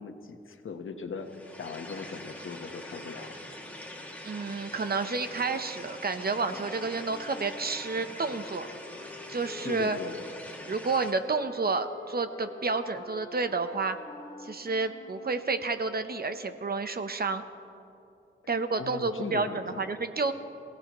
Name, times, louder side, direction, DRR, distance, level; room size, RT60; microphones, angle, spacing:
voice 1, 0.0-3.4 9.6-10.2 18.8-19.8, left 5 dB, 75° left, 5 dB, 1.3 m, -39 dB
sound 1, 1.2-11.1, left 1 dB, 5° left, 2.4 m, -44 dB
voice 2, 4.2-8.7 9.3-10.0 10.7-14.0 14.4-17.4 18.5-19.5 19.8-20.3, right 4 dB, 50° right, 9 dB, 0.9 m, -30 dB
sound 2, 6.5-15.6, left 2 dB, 25° left, 1.6 m, -48 dB
27.5 x 16.5 x 3.1 m, 2.7 s
wide cardioid pair, 75°, 21 cm